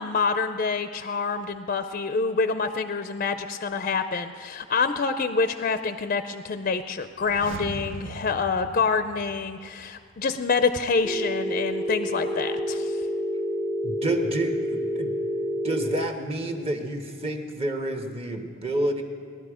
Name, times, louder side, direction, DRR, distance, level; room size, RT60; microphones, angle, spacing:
voice 1, 0.0-13.0, left 4 dB, 40° left, 10 dB, 0.4 m, -27 dB
sound 1, 7.1-10.0 10.2-10.3, right 3 dB, 70° right, 0.7 m, -40 dB
Telephone, 11.0-16.0, equal, 5° right, 0.8 m, -28 dB
voice 2, 13.8-15.1 15.6-19.0, right 1 dB, 30° right, 4 dB, 1.2 m, -29 dB
18.5 x 11.5 x 4.9 m, 2.2 s
head